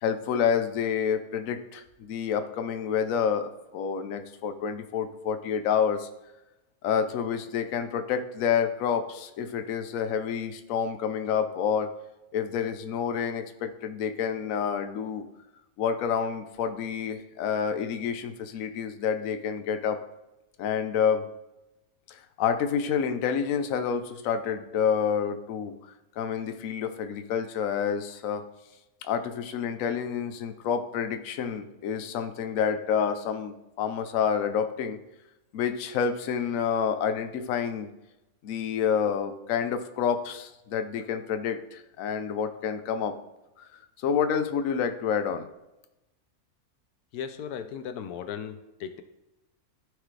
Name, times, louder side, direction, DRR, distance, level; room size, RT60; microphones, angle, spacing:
voice 1, 0.0-6.1 6.8-11.9 12.3-15.3 15.8-20.0 20.6-21.2 22.1-25.8 26.2-28.4 29.0-35.0 35.5-37.9 38.4-43.2 43.6-43.7 44.0-45.5, left 7 dB, 70° left, 8 dB, 1.1 m, -28 dB
voice 2, 47.1-49.0, left 8 dB, 90° left, 9 dB, 1.2 m, -36 dB
14.5 x 4.9 x 3.3 m, 0.95 s
omnidirectional pair, 1.6 m